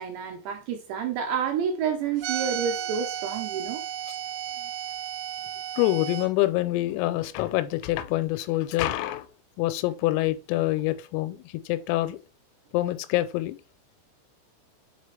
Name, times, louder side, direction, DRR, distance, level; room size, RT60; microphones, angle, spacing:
voice 1, 0.0-3.8, right 7 dB, 80° right, 2.5 m, -29 dB
sound 1, 2.2-6.3, right 10 dB, 60° right, 3.9 m, -33 dB
voice 2, 5.8-9.3 9.6-12.2 12.7-13.6, left 16 dB, 90° left, 3.3 m, -26 dB
7.1 x 4.1 x 3.2 m
omnidirectional pair, 6.0 m